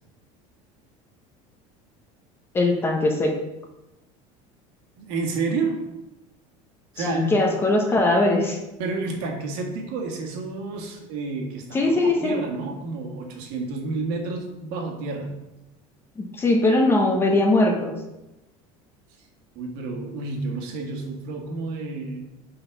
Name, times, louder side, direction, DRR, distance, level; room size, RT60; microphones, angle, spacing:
voice 1, 2.5-3.3 7.0-8.6 11.7-12.3 16.2-18.0, left 2 dB, 15° left, 2 dB, 0.8 m, -20 dB
voice 2, 5.0-5.8 6.9-7.3 8.8-15.4 19.6-22.3, right 3 dB, 65° right, 2 dB, 1.7 m, -30 dB
8.5 x 4.0 x 6.0 m, 0.97 s
cardioid pair, 180°, 16 cm